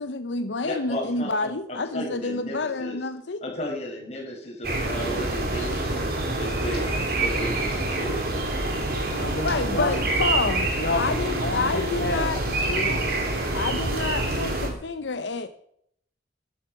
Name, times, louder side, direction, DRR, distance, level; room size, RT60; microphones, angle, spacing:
voice 1, 0.0-3.4 9.4-10.7 10.9-12.4 13.5-15.5, left 3 dB, 85° left, 9 dB, 0.8 m, -28 dB
voice 2, 0.6-3.0 3.4-6.1 6.4-6.9 7.2-8.2, left 1 dB, 35° left, -2 dB, 5.8 m, -34 dB
sound 1, 4.6-14.7, right 2 dB, 55° right, 3.3 m, -26 dB
voice 3, 9.0-9.9 10.8-13.1, left 2 dB, 60° left, 4 dB, 1.3 m, -30 dB
13.5 x 11.5 x 5.9 m, 0.70 s
head